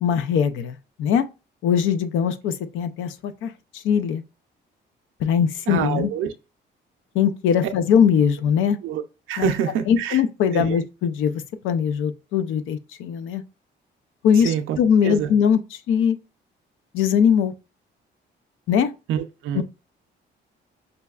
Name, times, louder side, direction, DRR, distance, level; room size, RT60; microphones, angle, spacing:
voice 1, 0.0-1.3 1.6-4.2 5.2-6.1 7.1-8.8 9.4-9.5 9.9-13.4 14.2-16.2 16.9-17.5 18.7-18.9 19.5-19.6, left 7 dB, 80° left, 0.5 m, -21 dB
voice 2, 5.7-6.3 8.8-9.0 9.3-10.2 10.5-10.7 14.4-14.8 15.0-15.3 19.1-19.6, right 9 dB, 85° right, 0.5 m, -26 dB
5.3 x 2.3 x 2.3 m
cardioid pair, 90°, 20 cm